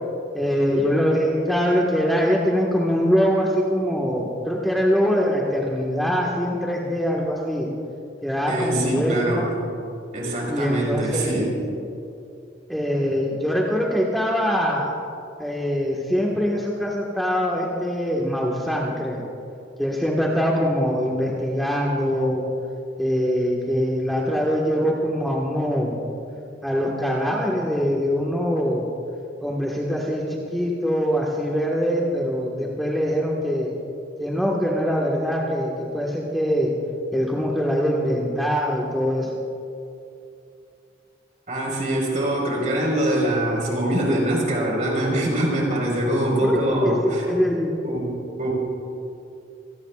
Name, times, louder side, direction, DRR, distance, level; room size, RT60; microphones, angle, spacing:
voice 1, 0.3-7.7 8.2-9.5 10.5-11.5 12.7-14.9 15.4-19.2 19.8-22.4 23.0-26.0 26.6-28.9 29.4-33.7 34.2-36.7 37.1-39.3 46.4-46.9 47.3-47.9, equal, ahead, -3 dB, 1.5 m, -23 dB
voice 2, 8.5-9.5 10.1-11.5 41.5-47.3 47.8-48.5, right 1 dB, 45° right, -2 dB, 4.6 m, -23 dB
26.5 x 18.5 x 2.4 m, 2.6 s
head